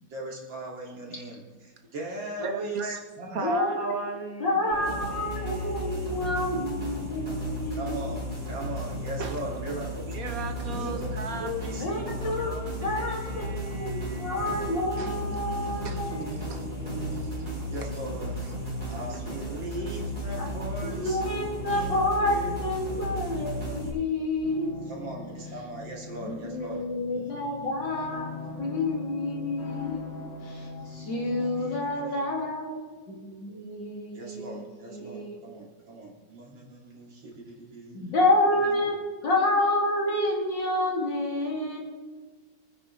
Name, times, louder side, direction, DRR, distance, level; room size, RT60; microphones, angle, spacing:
voice 1, 0.1-3.5 7.7-10.1 10.6-13.0 14.7-18.4 18.8-21.2 21.7-22.6 24.9-27.6 30.6-30.9 31.2-32.3 34.1-38.1 38.6-38.7, right 1 dB, 75° right, -3 dB, 3.3 m, -39 dB
voice 2, 2.4-3.0 3.3-6.3 6.9-7.7 9.2-9.4 10.1-15.1 15.8-16.1 16.4-16.7 17.8-17.9, right 4 dB, 50° right, 5 dB, 1.6 m, -38 dB
voice 3, 3.3-3.8 4.4-8.1 11.8-16.2 20.4-20.5 20.9-24.8 26.2-28.3 28.6-30.0 30.4-32.8 33.1-35.4 37.9-38.9 39.2-41.8, left 1 dB, 70° left, -1 dB, 3.1 m, -29 dB
sound 1, 4.7-23.9, equal, 25° right, 4.5 m, -34 dB
sound 2, 24.4-31.8, left 4 dB, 50° left, 2.0 m, -41 dB
24.5 x 9.6 x 3.3 m, 1.4 s
omnidirectional pair, 2.1 m